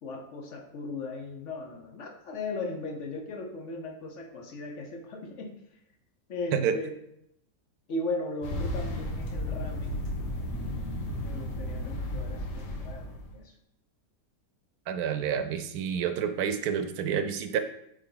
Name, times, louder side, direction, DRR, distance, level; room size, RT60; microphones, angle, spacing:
voice 1, 0.0-5.5 6.3-7.0 7.9-10.1 11.2-13.5, left 2 dB, 55° left, 2 dB, 1.1 m, -37 dB
sound 1, 8.4-13.4, left 1 dB, 75° left, 1.4 m, -34 dB
voice 2, 14.9-17.6, right 8 dB, 75° right, 8 dB, 1.1 m, -29 dB
7.8 x 3.3 x 3.9 m, 0.77 s
omnidirectional pair, 1.7 m